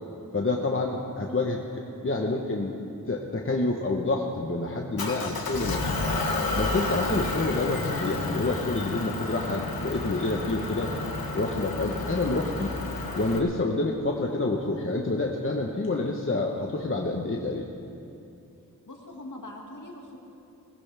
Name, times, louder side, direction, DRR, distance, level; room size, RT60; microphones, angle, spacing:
voice 1, 0.3-2.7 3.1-5.9 6.5-10.9 11.3-12.7 13.1-17.6, left 2 dB, 35° left, 0 dB, 1.1 m, -28 dB
Motor vehicle (road) / Engine, 5.0-13.4, left 3 dB, 80° left, 1.4 m, -31 dB
voice 2, 18.9-20.2, left 1 dB, 55° left, 0 dB, 2.2 m, -42 dB
19.5 x 17.0 x 3.5 m, 2.6 s
wide cardioid pair, 95°, 36 cm